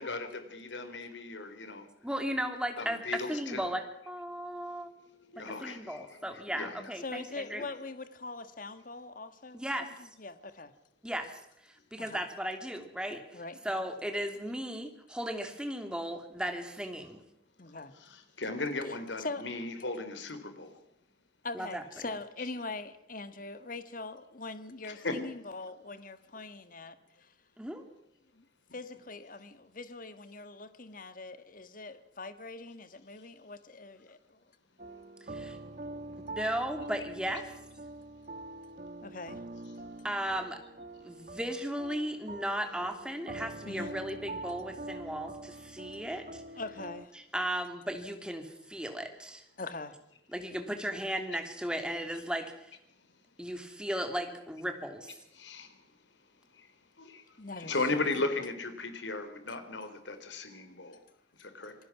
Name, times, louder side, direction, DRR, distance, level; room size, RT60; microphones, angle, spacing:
voice 1, 0.0-1.9 2.8-3.7 4.6-6.9 17.9-20.8 24.8-25.2 55.3-55.8 56.5-56.7 57.0-61.0 61.4-61.7, left 3 dB, 80° left, 9 dB, 3.7 m, -37 dB
voice 2, 2.0-4.9 5.5-7.7 9.5-9.9 11.0-11.4 11.9-17.2 21.5-21.8 27.6-27.8 35.3-35.6 35.9-37.5 40.0-40.6 41.0-46.4 47.1-49.4 50.3-52.7 53.4-55.2, equal, 5° right, 5 dB, 2.9 m, -36 dB
voice 3, 5.3-5.7 7.0-9.6 10.0-10.7 12.0-12.2 13.3-13.6 17.6-17.9 18.9-19.4 21.4-26.9 28.3-28.4 28.7-34.4 39.0-39.4 43.6-43.9 45.8-45.9 46.5-47.1 49.6-50.0 57.4-58.0, left 3 dB, 45° left, 11 dB, 1.6 m, -42 dB
sound 1, 34.8-47.1, right 2 dB, 45° right, 1.4 m, -44 dB
27.0 x 20.0 x 6.0 m, 0.76 s
head